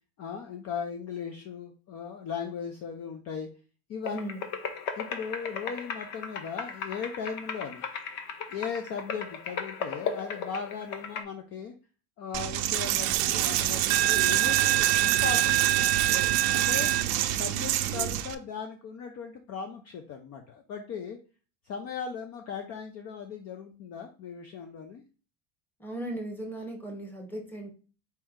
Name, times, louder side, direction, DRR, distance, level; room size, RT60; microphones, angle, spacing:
voice 1, 0.2-3.5 3.9-4.2 5.0-7.9 8.5-11.7 12.2-15.7 16.5-17.0 17.3-21.2 21.6-25.0, left 6 dB, 35° left, 5 dB, 0.5 m, -38 dB
sound 1, 4.0-11.2, left 6 dB, 75° left, 0.9 m, -37 dB
voice 2, 4.1-4.4 25.8-27.7, right 1 dB, 5° left, 1 dB, 1.0 m, -37 dB
Coin (dropping), 12.3-18.4, right 14 dB, 60° right, 0.5 m, -25 dB
4.3 x 2.9 x 3.6 m, 0.35 s
cardioid pair, 140°, 43 cm